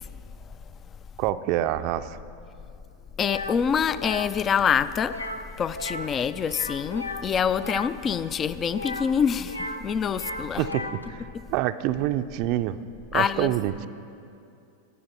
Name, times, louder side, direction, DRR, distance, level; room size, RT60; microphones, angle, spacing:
voice 1, 1.2-2.2 10.6-12.8 13.1-13.9, right 13 dB, 45° right, 12 dB, 0.5 m, -27 dB
sound 1, 3.2-3.6 3.9-4.3 5.1-5.5 5.7-6.1 6.4-7.9 8.7-9.8 10.1-11.0, left 2 dB, 90° left, 0.7 m, -35 dB
voice 2, 3.2-5.1 5.6-10.6 11.3-11.4 13.1-13.5, left 7 dB, 25° left, 15 dB, 0.5 m, -25 dB
19.5 x 12.5 x 4.3 m, 2.5 s
figure-of-eight pair, 90°, 0 cm